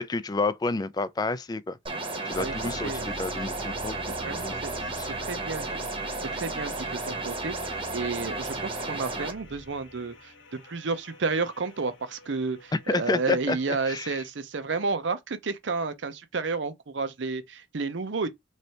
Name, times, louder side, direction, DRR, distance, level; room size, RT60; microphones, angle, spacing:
voice 1, 0.0-1.8 2.2-5.1 12.7-14.1, left 3 dB, 20° left, 0.3 m, -30 dB
sound 1, 1.9-9.3, right 2 dB, 30° right, 0.9 m, -33 dB
sound 2, 2.3-14.2, equal, 90° left, 0.9 m, -46 dB
voice 2, 4.2-5.8 6.2-18.3, right 4 dB, 70° right, 0.6 m, -31 dB
3.2 x 2.6 x 4.3 m
head